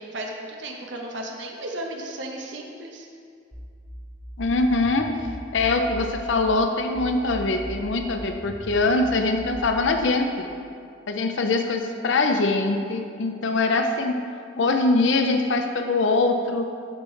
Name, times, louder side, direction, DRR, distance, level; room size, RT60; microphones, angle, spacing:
voice 1, 0.0-3.1, right 1 dB, 75° right, 1 dB, 0.9 m, -34 dB
sound 1, 3.5-6.5 6.9-10.0, equal, 10° right, 1.0 m, -38 dB
voice 2, 4.4-5.1 5.5-10.5 11.1-14.2 14.6-16.7, left 3 dB, 80° left, 5 dB, 0.6 m, -23 dB
10.5 x 6.4 x 3.2 m, 2.3 s
head